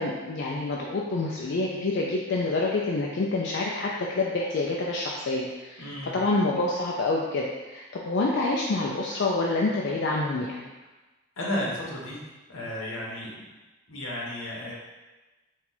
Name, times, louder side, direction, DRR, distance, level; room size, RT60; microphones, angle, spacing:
voice 1, 0.0-5.9 6.1-10.6, left 2 dB, 60° left, -2 dB, 0.4 m, -27 dB
voice 2, 5.8-6.2 11.4-12.2 12.5-13.4 13.9-14.7, left 1 dB, 85° left, -4 dB, 1.1 m, -33 dB
4.3 x 2.4 x 4.0 m, 1.2 s
head